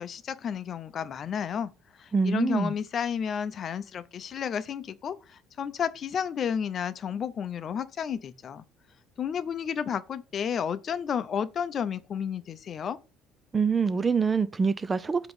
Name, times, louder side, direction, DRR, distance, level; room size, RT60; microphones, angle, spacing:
voice 1, 0.0-1.7 2.0-8.6 9.2-13.0, left 7 dB, 40° left, 0.6 m, -32 dB
voice 2, 2.1-2.7 13.5-15.3, right 5 dB, 20° right, 0.4 m, -25 dB
7.9 x 3.0 x 5.4 m
cardioid pair, 115°, 0 cm